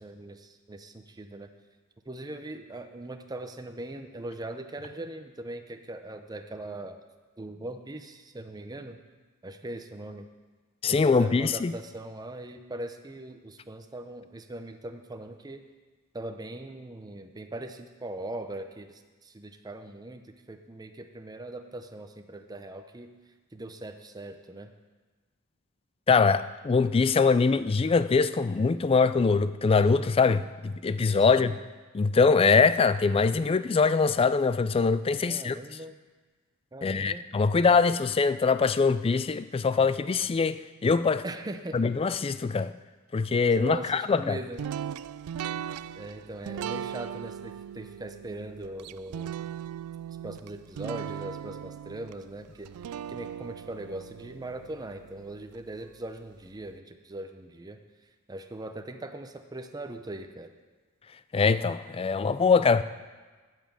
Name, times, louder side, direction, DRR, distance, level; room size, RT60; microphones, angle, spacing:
voice 1, 0.0-1.5 2.1-7.0 7.4-9.0 9.4-10.3 10.9-15.6 16.1-23.1 23.5-24.7 31.3-31.6 35.2-36.0 36.7-37.2 41.2-41.8 43.6-44.6 46.0-49.4 50.2-52.7 53.1-57.8 58.3-60.5, right 1 dB, 20° right, 0.7 m, -40 dB
voice 2, 10.8-11.7 26.1-31.5 31.9-35.6 36.8-41.2 41.7-42.7 43.1-44.4 61.3-62.8, left 4 dB, 25° left, 0.3 m, -23 dB
sound 1, 44.6-55.6, right 9 dB, 85° right, 0.3 m, -39 dB
9.3 x 8.5 x 7.5 m
head